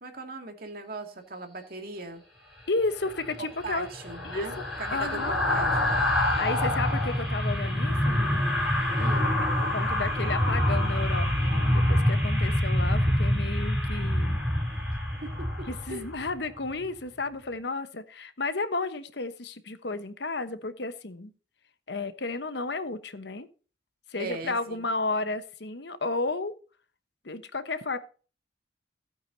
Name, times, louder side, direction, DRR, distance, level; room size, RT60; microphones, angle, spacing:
voice 1, 0.0-2.2 3.6-5.9 9.0-9.4 15.2-16.0 24.2-24.8, right 3 dB, 50° right, 4 dB, 2.3 m, -39 dB
voice 2, 2.7-3.9 4.2-4.7 4.9-5.4 6.1-8.4 9.2-9.4 9.7-14.4 15.7-21.3 21.9-23.5 24.1-26.5 27.2-28.0, left 3 dB, 65° left, 11 dB, 1.1 m, -32 dB
sound 1, 3.0-16.3 16.6-16.8, left 1 dB, ahead, 4.8 m, -26 dB
15.5 x 8.9 x 2.8 m, 0.36 s
head